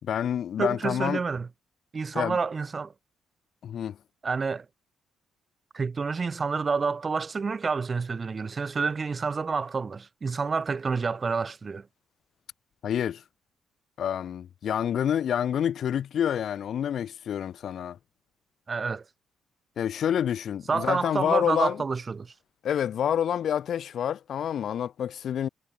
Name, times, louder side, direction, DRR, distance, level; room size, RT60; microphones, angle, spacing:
voice 1, 0.0-1.2 2.1-2.4 3.6-4.0 12.8-13.2 14.0-18.0 19.8-21.8 22.6-25.5, left 9 dB, 65° left, 4.8 m, -28 dB
voice 2, 0.6-1.5 1.9-2.9 4.2-4.7 5.7-11.9 18.7-19.1 20.7-22.3, right 4 dB, 35° right, 3.5 m, -28 dB
cardioid pair, 90°, 0 cm